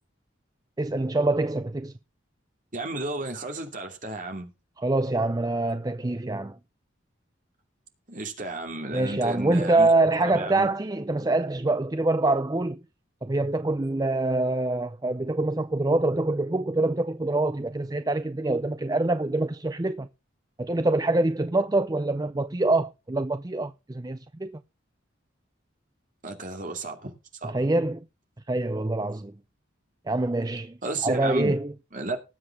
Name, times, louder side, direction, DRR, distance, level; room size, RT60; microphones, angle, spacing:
voice 1, 0.8-1.9 4.8-6.6 8.9-12.8 13.2-20.1 20.6-24.5 27.4-28.0 28.5-29.3 30.1-30.8 31.0-31.7, right 2 dB, 20° right, 0.5 m, -25 dB
voice 2, 2.7-4.5 8.1-9.9 10.2-10.7 26.2-27.1 27.4-27.7 30.8-31.6 31.9-32.2, right 2 dB, 40° right, 2.7 m, -32 dB
19.5 x 7.8 x 3.6 m
head